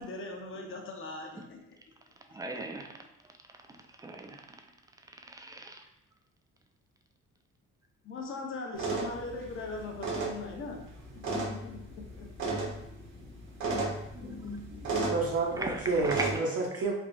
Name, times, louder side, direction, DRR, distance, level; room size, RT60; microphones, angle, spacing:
voice 1, 0.0-1.6 8.0-10.9 11.2-12.5, left 3 dB, 40° left, 2 dB, 0.7 m, -40 dB
voice 2, 2.3-2.9 4.0-4.4 5.3-5.8 15.6-16.3, right 2 dB, 10° right, 4 dB, 0.3 m, -37 dB
sound 1, 8.7-16.3, right 3 dB, 70° right, 1.0 m, -35 dB
voice 3, 14.9-16.9, right 3 dB, 50° right, -3 dB, 0.7 m, -30 dB
3.4 x 2.4 x 2.5 m, 0.80 s
cardioid pair, 85°, 30 cm